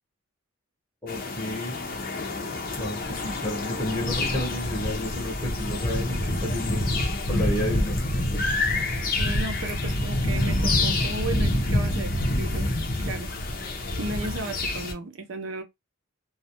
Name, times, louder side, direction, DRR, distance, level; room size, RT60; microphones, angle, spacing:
voice 1, 1.0-1.7 2.8-6.8 7.3-9.0, left 1 dB, 10° left, 0.8 m, -32 dB
sound 1, 1.1-14.9, left 1 dB, 45° left, 0.5 m, -27 dB
voice 2, 9.2-12.7 13.1-13.3 14.0-15.6, right 2 dB, 65° right, 0.5 m, -34 dB
2.3 x 2.0 x 2.7 m
head